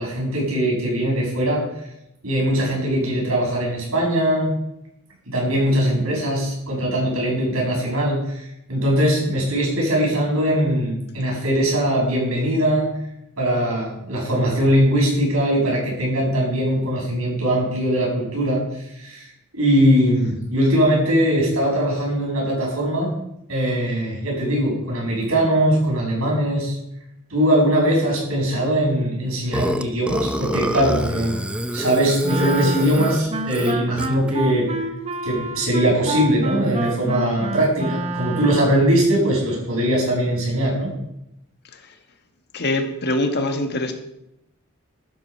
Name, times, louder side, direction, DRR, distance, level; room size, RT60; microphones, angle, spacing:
voice 1, 0.0-1.6 2.2-4.5 5.3-12.9 13.4-19.3 19.5-23.1 23.5-26.8 27.3-31.4 31.7-34.7 35.2-40.9, equal, 75° right, -2 dB, 6.8 m, -21 dB
Burping eructation, 29.5-34.3, equal, 5° right, 0.7 m, -26 dB
Wind instrument woodwind instrument, 32.2-38.9, right 2 dB, 30° right, 1.2 m, -28 dB
voice 2, 42.5-43.9, left 1 dB, 50° left, 5 dB, 1.7 m, -23 dB
12.0 x 10.5 x 5.9 m, 0.83 s
head